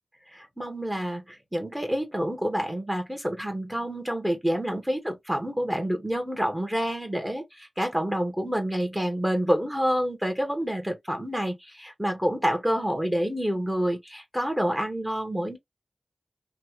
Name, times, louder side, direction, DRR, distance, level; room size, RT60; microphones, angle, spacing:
voice 1, 0.3-15.6, equal, 10° right, 1.3 m, -28 dB
3.2 x 2.4 x 2.9 m
wide cardioid pair, 55°, 0 cm